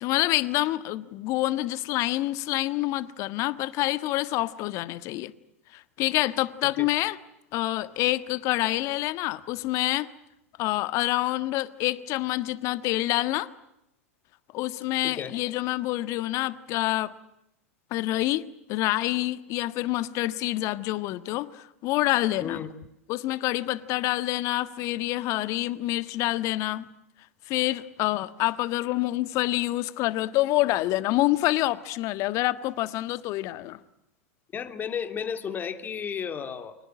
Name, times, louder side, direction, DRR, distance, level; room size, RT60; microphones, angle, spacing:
voice 1, 0.0-5.3 5.7-7.2 7.5-10.1 10.6-13.5 14.5-17.1 17.9-18.4 18.7-22.6 23.1-26.9 27.5-33.8, left 17 dB, 45° left, 1.5 m, -27 dB
voice 2, 15.0-15.3 22.4-22.7 34.5-36.8, left 7 dB, 25° left, 2.9 m, -33 dB
29.5 x 25.0 x 7.6 m
hypercardioid pair, 95°, 7 cm